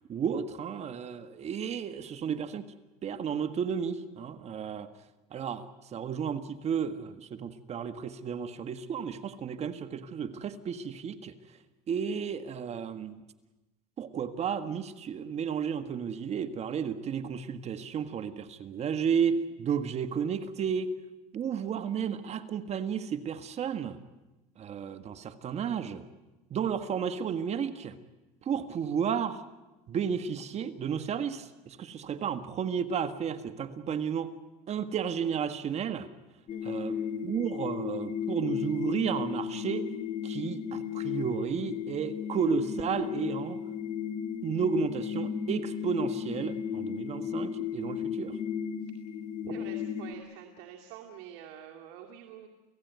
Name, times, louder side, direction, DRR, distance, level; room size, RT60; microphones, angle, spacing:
voice 1, 0.1-2.6 3.0-4.9 5.3-5.7 5.9-11.3 11.9-13.2 14.0-20.9 21.3-24.0 24.6-26.0 26.5-28.0 28.4-29.4 29.9-34.3 34.7-36.1 36.6-37.0 37.2-39.9 40.2-43.6 44.4-48.4, right 7 dB, 40° right, 10 dB, 1.6 m, -32 dB
sound 1, 36.5-50.1, left 8 dB, 45° left, 2.6 m, -34 dB
voice 2, 36.5-37.1 48.8-48.9 49.4-52.5, right 9 dB, 75° right, 1 dB, 2.3 m, -47 dB
29.0 x 16.5 x 9.4 m, 1.1 s
supercardioid pair, 115°, 17 cm